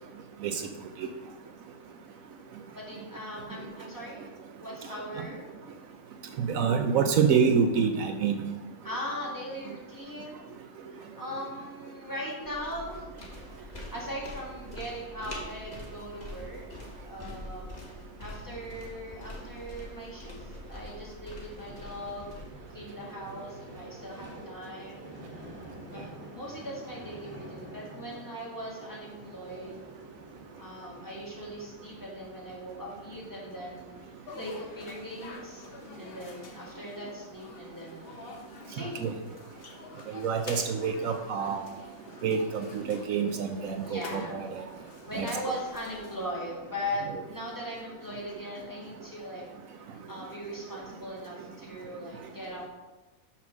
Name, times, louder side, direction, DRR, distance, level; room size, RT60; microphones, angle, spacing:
voice 1, 2.7-4.2 4.6-5.5 8.8-10.4 10.9-13.1 13.5-16.6 17.0-17.8 18.2-22.4 22.7-25.0 25.9-29.9 30.6-33.9 34.4-35.6 35.9-38.1 38.7-39.2 43.8-44.4 45.1-49.5 49.8-52.7, equal, 15° left, -6 dB, 2.0 m, -39 dB
voice 2, 6.4-8.4 39.0-39.1 40.2-41.6 42.2-44.6 45.1-45.3, right 6 dB, 75° right, 6 dB, 1.0 m, -27 dB
sound 1, 12.4-22.4, left 2 dB, 30° left, 1.4 m, -44 dB
Vehicle, 21.0-37.2, equal, 5° right, 2.2 m, -50 dB
sound 2, 34.3-46.3, left 4 dB, 45° left, 1.0 m, -47 dB
5.8 x 5.7 x 6.0 m, 1.2 s
omnidirectional pair, 1.5 m